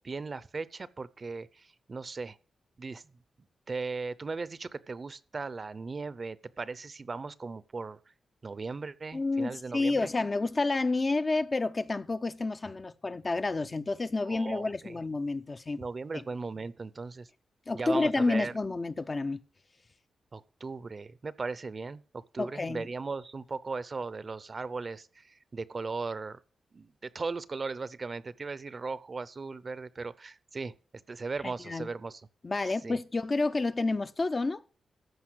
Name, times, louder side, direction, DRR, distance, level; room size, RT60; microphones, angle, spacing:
voice 1, 0.0-2.4 2.8-3.0 3.7-8.0 8.4-10.1 10.4-10.5 14.3-15.0 15.8-17.3 17.7-18.5 20.3-26.4 26.7-30.7 31.1-32.2 32.8-33.0, right 4 dB, 40° right, 0.7 m, -37 dB
voice 2, 9.1-15.8 16.1-16.2 17.7-19.4 22.4-22.9 31.7-31.9 32.4-34.6, left 3 dB, 30° left, 0.6 m, -29 dB
14.5 x 5.6 x 6.2 m
cardioid pair, 100°, 0 cm